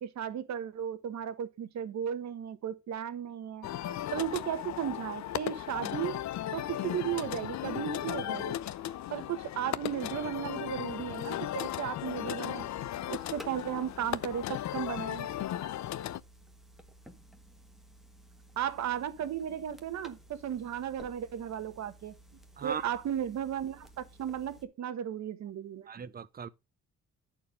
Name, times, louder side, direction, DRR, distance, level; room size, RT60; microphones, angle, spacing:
voice 1, 0.0-6.2 6.5-8.6 9.1-12.7 13.1-15.3 18.6-22.1 22.6-25.9, right 9 dB, 65° right, 1.2 m, -35 dB
sound 1, 3.6-16.2, left 12 dB, 65° left, 0.6 m, -36 dB
sound 2, 12.8-24.6, equal, ahead, 1.4 m, -55 dB
voice 2, 25.9-26.5, right 7 dB, 30° right, 0.7 m, -38 dB
9.6 x 4.6 x 5.1 m
cardioid pair, 90°, 30 cm